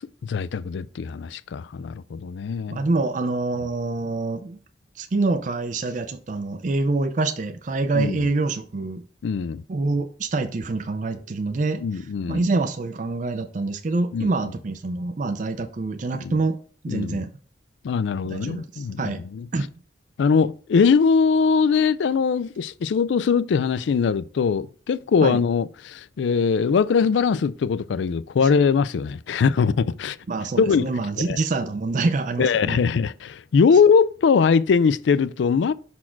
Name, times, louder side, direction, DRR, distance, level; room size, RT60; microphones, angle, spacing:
voice 1, 0.2-2.8 7.9-8.3 9.2-9.6 11.8-12.4 14.1-14.3 16.2-16.3 16.9-17.2 17.8-19.5 20.2-30.2 30.6-30.9 31.2-31.4 32.4-35.7, left 5 dB, 75° left, 0.3 m, -21 dB
voice 2, 2.7-4.6 5.0-9.0 9.7-16.6 16.8-17.3 18.2-19.2 19.5-19.7 25.2-25.4 30.3-32.8, right 3 dB, 40° right, 0.4 m, -26 dB
5.9 x 4.3 x 4.4 m
head